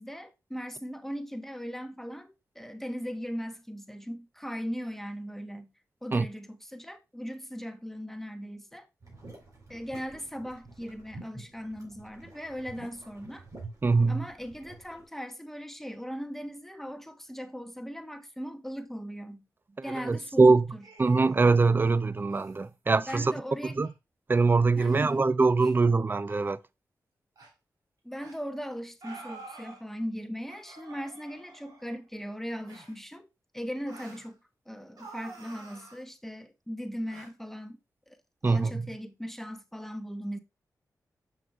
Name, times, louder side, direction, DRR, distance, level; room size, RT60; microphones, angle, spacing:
voice 1, 0.0-5.7 6.0-8.9 9.7-13.4 14.1-19.4 19.8-20.8 23.0-23.8 24.8-25.1 28.0-33.3 33.5-34.4 34.7-37.8 38.1-38.2 38.4-40.4, equal, 5° left, 1.0 m, -38 dB
sound 1, 9.0-15.0, right 2 dB, 55° right, 3.8 m, -48 dB
voice 2, 13.8-14.2 20.0-20.7 21.0-23.3 23.8-23.9 24.3-26.6 38.4-38.9, right 3 dB, 30° right, 0.4 m, -23 dB
sound 2, 20.8-21.5 22.3-22.6 23.2-23.3 23.6-23.9 24.8-25.2 26.2-26.4 27.4-27.5 28.2-28.4 29.0-29.8 30.5-32.0 32.6-33.0 33.9-34.3 35.0-36.0 37.1-37.3, right 3 dB, 80° right, 2.6 m, -49 dB
7.0 x 6.1 x 2.3 m
cardioid pair, 55°, 7 cm